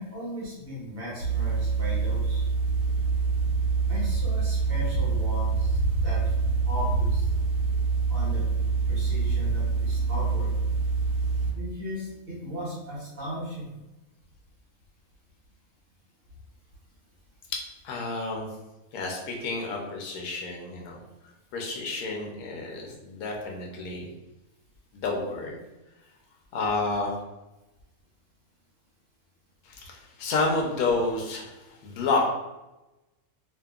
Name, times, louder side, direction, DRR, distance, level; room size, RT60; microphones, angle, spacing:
voice 1, 0.0-2.4 3.9-6.2 6.7-7.3 8.1-8.4 8.9-10.5 11.5-13.7, equal, 45° right, -6 dB, 1.0 m, -37 dB
sound 1, 1.2-11.5, right 4 dB, 65° right, 1.2 m, -25 dB
voice 2, 17.5-18.5 18.9-21.0 21.5-24.1 24.9-25.6 26.5-27.1 29.6-32.3, left 3 dB, 90° left, 0 dB, 1.1 m, -30 dB
2.7 x 2.5 x 2.3 m, 1.0 s
omnidirectional pair, 1.5 m